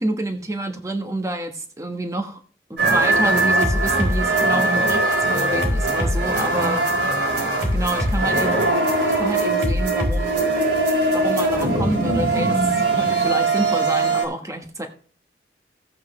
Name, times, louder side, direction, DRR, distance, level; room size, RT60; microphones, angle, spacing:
voice 1, 0.0-2.4 2.7-6.9 7.7-8.9 9.2-10.5 11.1-14.9, right 1 dB, 20° right, 5 dB, 1.3 m, -28 dB
sound 1, 2.8-14.2, right 2 dB, 85° right, 4.5 m, -20 dB
15.5 x 8.4 x 3.2 m, 0.43 s
head